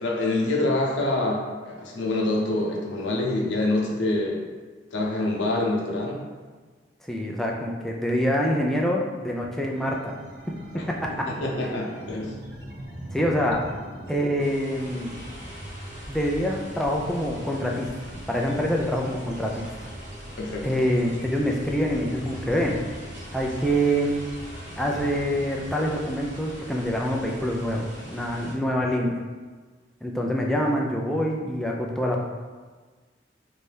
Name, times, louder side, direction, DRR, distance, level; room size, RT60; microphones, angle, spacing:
voice 1, 0.0-4.5 4.9-6.2 10.7-10.8 11.1-12.3 20.4-20.7, left 2 dB, 85° left, -2 dB, 0.7 m, -26 dB
voice 2, 7.1-10.1 11.2-11.3 13.1-13.6 14.1-15.2 16.1-17.9 18.3-19.7 20.6-22.8 23.3-24.2 24.8-29.1 30.0-32.2, equal, ahead, -1 dB, 0.3 m, -25 dB
sound 1, 9.7-25.7, right 1 dB, 60° right, 0.8 m, -41 dB
sound 2, 14.4-28.5, equal, 40° right, 1.2 m, -43 dB
3.3 x 2.7 x 3.3 m, 1.4 s
head